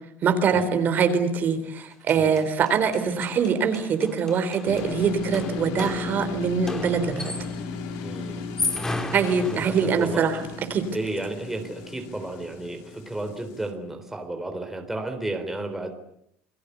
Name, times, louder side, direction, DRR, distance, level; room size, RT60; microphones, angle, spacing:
voice 1, 0.2-7.3 9.1-10.9, right 6 dB, 35° right, 9 dB, 4.0 m, -23 dB
sound 1, 1.8-1.9 2.1-7.7 8.4-10.2, left 2 dB, 10° left, 2.6 m, -35 dB
sound 2, 4.7-13.7, left 4 dB, 75° left, 5.1 m, -35 dB
voice 2, 8.0-8.5 8.9-9.2 9.5-10.2 10.9-15.9, right 2 dB, 5° right, 4 dB, 3.8 m, -33 dB
29.5 x 21.5 x 8.3 m, 0.73 s
cardioid pair, 145°, 5 cm